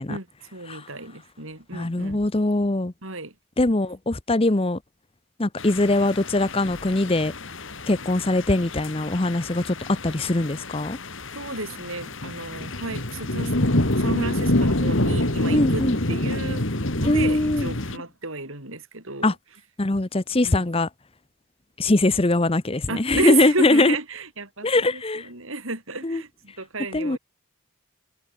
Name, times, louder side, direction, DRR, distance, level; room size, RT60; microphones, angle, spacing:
voice 1, 0.0-2.2 3.0-3.3 11.4-13.5 14.0-16.6 17.0-19.3 20.4-20.6 22.9-27.2, right 3 dB, 65° right, 5.6 m, -32 dB
voice 2, 1.7-2.9 3.6-4.8 5.4-7.3 7.9-11.0 15.5-16.0 17.0-17.7 19.2-19.3 19.8-20.9 21.8-23.9 24.6-25.3 26.0-26.2 26.9-27.2, left 2 dB, 25° left, 0.8 m, -22 dB
sound 1, 5.6-18.0, left 1 dB, 60° left, 2.7 m, -27 dB
head